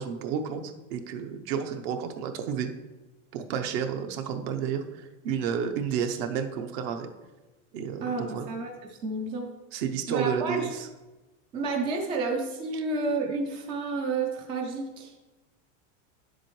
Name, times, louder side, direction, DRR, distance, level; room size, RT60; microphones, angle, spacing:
voice 1, 0.0-2.7 3.3-7.1 7.7-8.5 9.7-10.9, right 7 dB, 50° right, 7 dB, 0.8 m, -31 dB
voice 2, 8.0-9.5 10.1-10.7 11.5-15.1, right 3 dB, 15° right, 1 dB, 0.3 m, -30 dB
9.4 x 7.5 x 3.1 m, 1.2 s
supercardioid pair, 165°, 38 cm